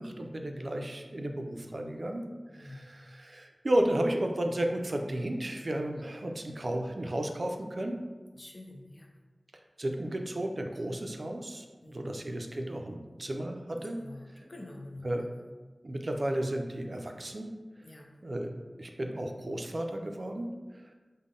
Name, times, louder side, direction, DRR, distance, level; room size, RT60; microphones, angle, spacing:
voice 1, 0.0-2.3 2.5-8.0 9.8-14.0 15.0-15.2 15.8-17.5 18.2-18.5 18.8-20.9, right 1 dB, 60° right, 3 dB, 0.3 m, -33 dB
voice 2, 8.3-9.1 11.8-12.2 13.7-15.3 17.8-18.1, left 1 dB, 45° left, 2 dB, 0.5 m, -47 dB
3.6 x 2.0 x 3.6 m, 1.3 s
wide cardioid pair, 55°, 0 cm